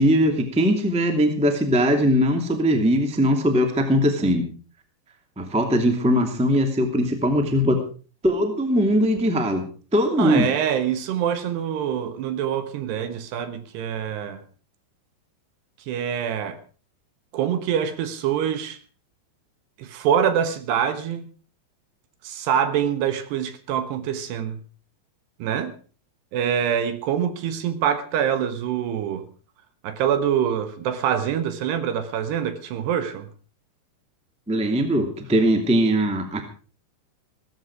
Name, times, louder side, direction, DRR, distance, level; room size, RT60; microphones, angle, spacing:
voice 1, 0.0-4.4 5.3-7.8 8.2-9.6 9.9-10.5 34.5-36.4, equal, 5° right, 1.2 m, -20 dB
voice 2, 10.2-14.4 15.9-16.6 17.3-18.8 19.8-21.3 22.2-24.6 25.4-25.7 26.3-29.2 29.8-33.3, right 9 dB, 70° right, 3.1 m, -25 dB
16.5 x 14.5 x 4.8 m
omnidirectional pair, 5.3 m